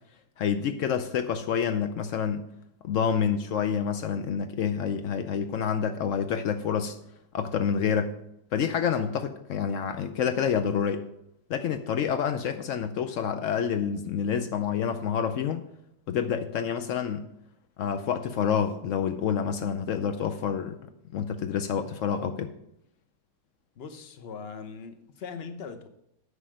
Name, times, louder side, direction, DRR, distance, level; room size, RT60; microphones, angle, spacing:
voice 1, 0.4-2.5 2.8-7.0 7.3-8.1 8.5-11.0 11.5-15.6 16.1-17.3 17.8-20.8 21.1-22.5, left 7 dB, 80° left, 0.6 m, -28 dB
voice 2, 23.8-25.9, left 5 dB, 45° left, 0.8 m, -40 dB
9.7 x 5.6 x 7.7 m
omnidirectional pair, 2.1 m